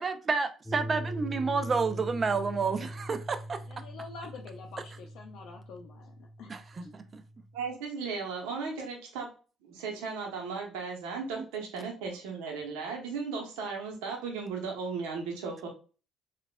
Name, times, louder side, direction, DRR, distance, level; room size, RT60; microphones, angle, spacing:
voice 1, 0.0-3.6 6.5-7.2 11.4-11.5, right 4 dB, 40° right, 0.5 m, -30 dB
sound 1, 0.7-7.7, right 1 dB, 20° left, 0.6 m, -41 dB
voice 2, 3.7-6.5, left 4 dB, 65° left, 0.5 m, -46 dB
voice 3, 7.5-9.3 9.6-15.7, right 5 dB, 80° right, 0.9 m, -36 dB
3.9 x 2.4 x 2.2 m
hypercardioid pair, 60°, 0 cm